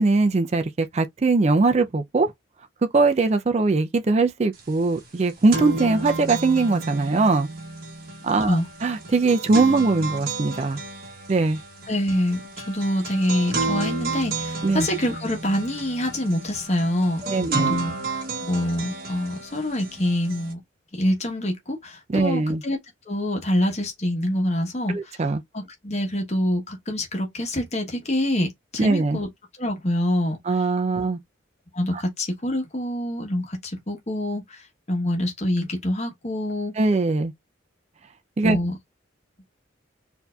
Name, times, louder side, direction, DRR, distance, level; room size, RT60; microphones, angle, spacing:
voice 1, 0.0-2.3 2.9-7.5 8.2-10.8 11.3-11.6 14.6-14.9 17.2-17.8 22.1-22.6 24.9-25.4 28.8-29.2 30.5-31.2 31.9-32.0 36.8-37.3 38.4-38.6, right 3 dB, 35° right, 0.4 m, -21 dB
sound 1, 4.6-4.7 5.0-20.5, right 3 dB, 50° right, 1.1 m, -32 dB
voice 2, 11.9-18.0 18.4-20.6 20.9-22.8 23.1-25.2 25.5-29.3 29.6-30.4 31.7-34.6 34.9-36.7 38.4-38.8, left 1 dB, 35° left, 1.1 m, -26 dB
4.5 x 2.7 x 2.3 m
head